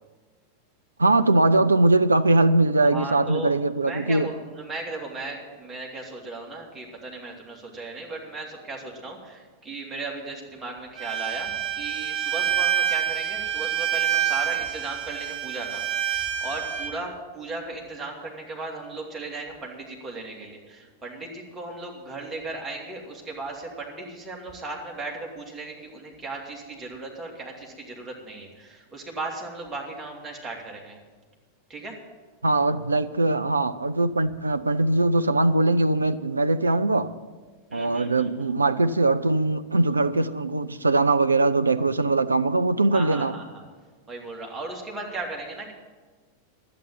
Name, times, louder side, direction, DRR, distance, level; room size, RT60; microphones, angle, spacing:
voice 1, 1.0-4.3 32.4-37.1 37.7-43.4, right 2 dB, 80° right, 0.4 m, -21 dB
voice 2, 2.8-3.6 3.8-31.0 31.7-32.0 37.7-38.5 42.9-43.6 44.1-45.7, right 2 dB, 15° right, 2.7 m, -36 dB
Bowed string instrument, 11.0-16.9, right 10 dB, 40° right, 1.2 m, -27 dB
11.5 x 8.6 x 8.9 m
figure-of-eight pair, 90°, 0 cm